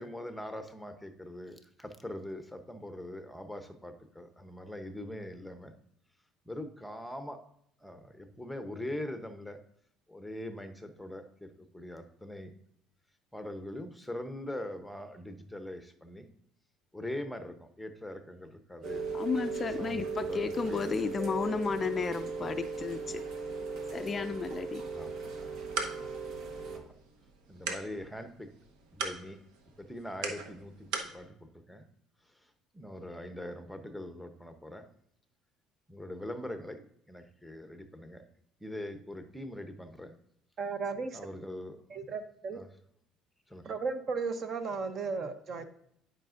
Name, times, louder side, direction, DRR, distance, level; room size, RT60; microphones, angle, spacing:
voice 1, 0.0-5.7 6.5-7.4 7.8-9.6 10.1-12.5 13.3-16.3 16.9-19.0 19.8-21.1 25.0-25.5 26.7-26.9 27.5-28.5 28.9-29.4 29.8-30.9 31.1-31.3 31.7-31.9 32.7-34.9 35.9-38.2 38.6-40.2 41.1-42.0 42.5-42.7 43.5-43.6, left 1 dB, ahead, 7 dB, 0.8 m, -42 dB
Rain, 18.8-26.8, right 4 dB, 60° right, 1.1 m, -37 dB
voice 2, 19.1-23.2 23.9-24.8, left 5 dB, 30° left, 10 dB, 0.3 m, -33 dB
sound 1, 25.3-31.2, right 4 dB, 85° right, 0.9 m, -41 dB
voice 3, 40.6-41.3 41.9-42.6 43.6-45.6, right 4 dB, 45° right, 9 dB, 0.7 m, -35 dB
10.5 x 5.0 x 2.5 m, 0.71 s
cardioid pair, 115°, 0 cm